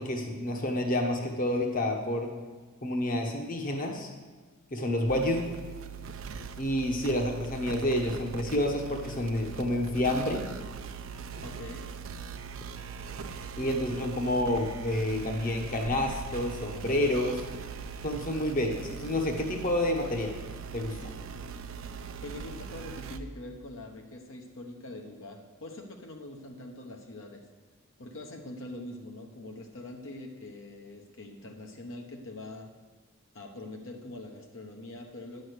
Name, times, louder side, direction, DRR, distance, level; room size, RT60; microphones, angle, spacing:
voice 1, 0.0-2.3 2.8-4.1 4.7-5.5 6.6-10.4 13.6-17.4 18.0-20.3 20.7-21.1, left 1 dB, 40° left, 2 dB, 1.1 m, -29 dB
sound 1, 5.1-23.2, right 6 dB, 70° right, 0.6 m, -41 dB
voice 2, 11.4-11.9 22.2-27.5 28.0-32.7 33.3-35.4, left 2 dB, 65° left, 2 dB, 1.0 m, -43 dB
10.5 x 6.4 x 6.5 m, 1.4 s
head